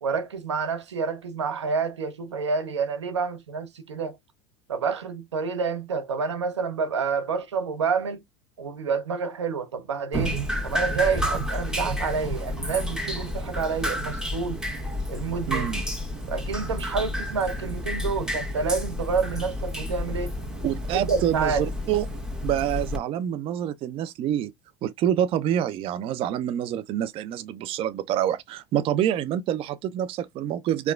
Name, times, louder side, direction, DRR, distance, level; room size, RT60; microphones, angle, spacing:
voice 1, 0.0-4.2 4.7-8.2 8.6-14.6 15.1-15.7 16.3-20.3 20.9-21.6, right 5 dB, 90° right, 0.8 m, -28 dB
Drip, 10.1-23.0, equal, 5° right, 1.4 m, -30 dB
voice 2, 15.5-15.8 20.6-22.1 22.4-24.5 24.8-30.9, right 11 dB, 40° right, 0.4 m, -27 dB
4.6 x 2.3 x 2.2 m
hypercardioid pair, 80°, 14 cm